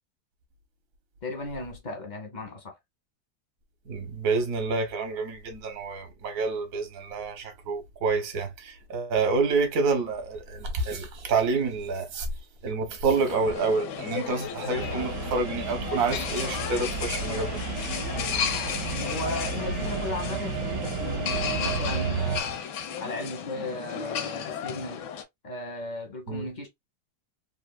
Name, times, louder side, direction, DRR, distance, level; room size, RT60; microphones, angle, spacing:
voice 1, 1.2-2.8 18.9-22.7 23.0-25.1 25.4-26.7, left 2 dB, 50° left, 0.5 m, -36 dB
voice 2, 3.9-12.3 12.6-17.6 26.3-26.5, right 4 dB, 60° right, 1.2 m, -28 dB
sound 1, 13.1-25.2, left 8 dB, 85° left, 1.2 m, -34 dB
sound 2, 14.8-22.4, right 5 dB, 85° right, 1.2 m, -32 dB
3.3 x 2.5 x 2.2 m
omnidirectional pair, 1.8 m